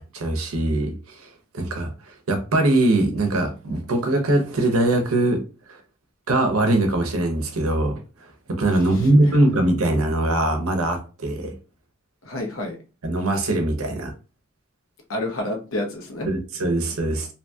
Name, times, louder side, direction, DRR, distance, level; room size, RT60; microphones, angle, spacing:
voice 1, 0.1-1.3 1.5-5.4 5.7-5.8 6.3-8.0 8.5-11.5 13.0-14.1 16.3-17.3, right 2 dB, 85° right, 5 dB, 0.7 m, -21 dB
voice 2, 8.7-9.4 12.2-12.8 15.1-16.3, left 1 dB, 70° left, 2 dB, 0.8 m, -30 dB
2.7 x 2.6 x 2.2 m, 0.33 s
head